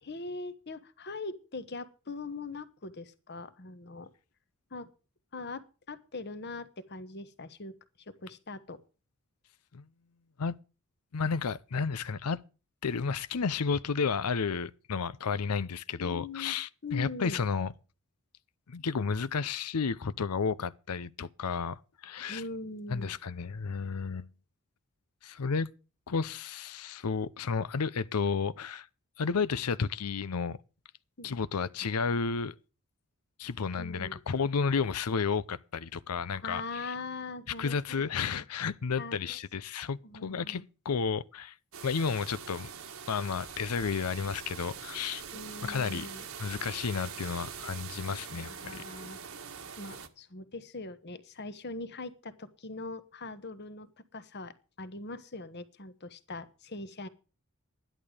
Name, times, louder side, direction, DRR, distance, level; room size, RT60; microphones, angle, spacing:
voice 1, 0.0-4.1 4.7-4.9 5.3-8.8 16.0-16.6 16.8-17.4 22.3-23.2 31.2-31.3 33.8-34.2 36.4-38.1 38.3-38.4 39.0-39.4 40.0-40.7 45.3-46.3 48.3-49.2 49.8-57.1, left 3 dB, 50° left, 1.3 m, -41 dB
voice 2, 11.1-12.4 12.8-17.7 18.7-22.4 22.9-24.3 25.2-25.7 26.1-28.9 29.2-30.6 31.2-32.5 33.4-36.9 37.6-41.5 41.8-42.7 43.1-45.2 45.6-46.1 46.4-48.8, left 5 dB, 90° left, 0.6 m, -32 dB
sound 1, 41.7-50.1, right 7 dB, 65° right, 1.5 m, -43 dB
13.0 x 11.0 x 4.9 m
head